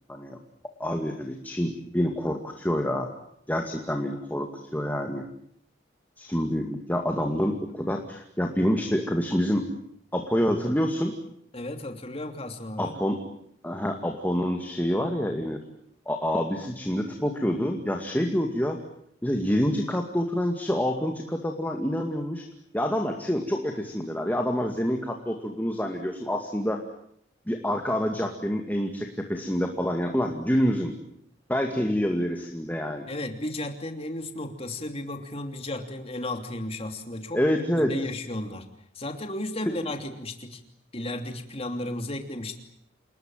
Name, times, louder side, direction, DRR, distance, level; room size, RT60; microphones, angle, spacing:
voice 1, 0.8-3.1 3.5-5.2 6.2-9.7 10.1-11.1 12.8-13.2 13.6-15.6 16.1-18.8 19.2-22.4 22.7-26.8 27.5-30.9 31.5-33.1 37.3-37.9 39.7-39.8, equal, 10° left, 3 dB, 2.3 m, -27 dB
voice 2, 11.5-13.0 33.1-38.7 38.9-40.6 40.9-42.6, left 1 dB, 30° left, 6 dB, 3.0 m, -34 dB
28.5 x 20.0 x 9.2 m, 0.70 s
head